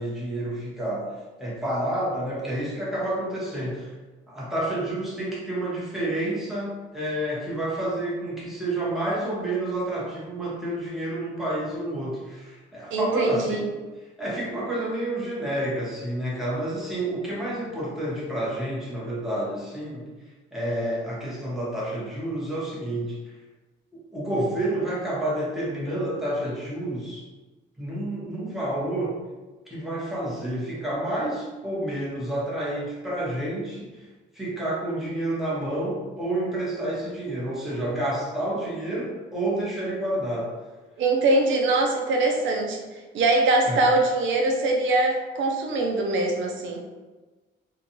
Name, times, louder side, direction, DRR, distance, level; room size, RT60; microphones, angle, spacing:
voice 1, 0.0-3.9 4.3-20.1 20.5-23.3 24.1-27.3 27.8-29.2 29.7-34.1 34.3-40.5 43.6-43.8, right 1 dB, ahead, -7 dB, 1.0 m, -29 dB
voice 2, 12.9-13.7 41.0-42.8 43.1-46.8, right 2 dB, 75° right, 1 dB, 0.5 m, -22 dB
2.4 x 2.2 x 2.9 m, 1.2 s
cardioid pair, 90°, 20 cm